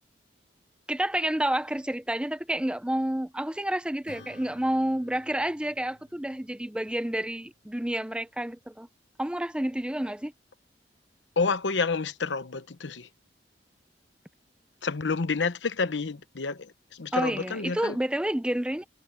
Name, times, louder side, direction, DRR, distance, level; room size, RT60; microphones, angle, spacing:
voice 1, 0.9-8.9 9.2-10.3 17.1-18.8, right 1 dB, 5° right, 0.6 m, -29 dB
Acoustic guitar / Strum, 4.1-8.8, left 2 dB, 75° left, 2.4 m, -55 dB
voice 2, 11.4-13.1 14.8-18.0, left 4 dB, 90° left, 0.9 m, -29 dB
head